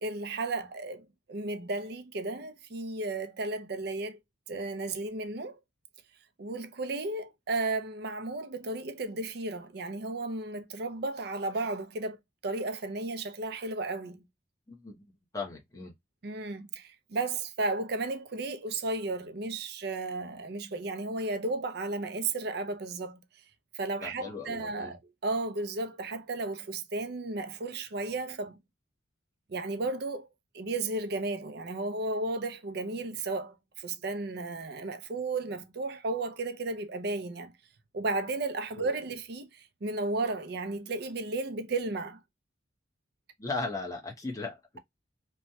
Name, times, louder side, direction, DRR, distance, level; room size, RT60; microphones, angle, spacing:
voice 1, 0.0-4.2 4.5-5.6 6.4-12.2 12.4-14.2 16.2-23.2 23.7-28.6 29.5-30.3 30.5-37.5 37.9-42.2, right 2 dB, 55° right, 0.5 m, -34 dB
voice 2, 14.7-15.0 15.3-15.9 24.0-24.9 38.8-38.9 43.4-44.8, left 3 dB, 15° left, 0.9 m, -37 dB
3.1 x 2.2 x 2.7 m
head